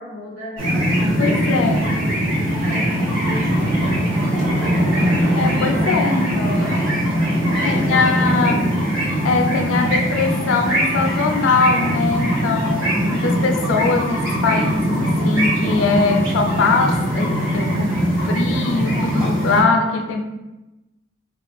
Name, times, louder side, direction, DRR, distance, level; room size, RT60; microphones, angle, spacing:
voice 1, 0.0-5.1 5.6-8.8, equal, 65° right, -9 dB, 1.3 m, -36 dB
sound 1, 0.6-19.6, equal, 90° right, 1.1 m, -21 dB
voice 2, 1.2-1.9 5.4-6.5 7.6-8.7 9.2-17.9 18.2-20.3, left 4 dB, 85° left, 4 dB, 0.3 m, -21 dB
2.7 x 2.3 x 2.4 m, 1.0 s
head